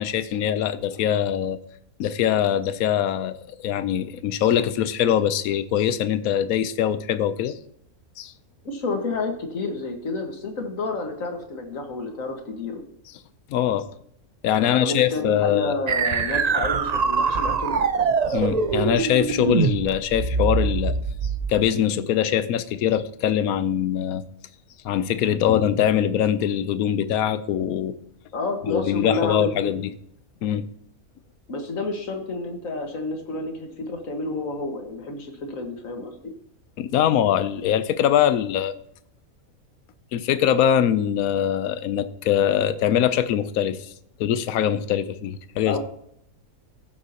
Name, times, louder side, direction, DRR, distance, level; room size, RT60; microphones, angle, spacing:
voice 1, 0.0-1.6 2.0-3.4 3.6-7.6 8.2-8.3 13.5-13.9 14.4-15.8 18.3-21.0 21.5-24.2 24.8-28.0 28.7-29.8 30.4-30.7 36.8-38.7 40.1-43.9 44.2-45.8, left 10 dB, 85° left, 13 dB, 1.1 m, -22 dB
voice 2, 8.7-12.8 14.5-18.2 28.3-29.7 31.5-36.3 45.7-45.8, left 2 dB, 65° left, 4 dB, 2.0 m, -30 dB
sound 1, 15.9-21.6, right 5 dB, 55° right, 0.4 m, -23 dB
16.0 x 7.3 x 2.9 m, 0.70 s
omnidirectional pair, 1.5 m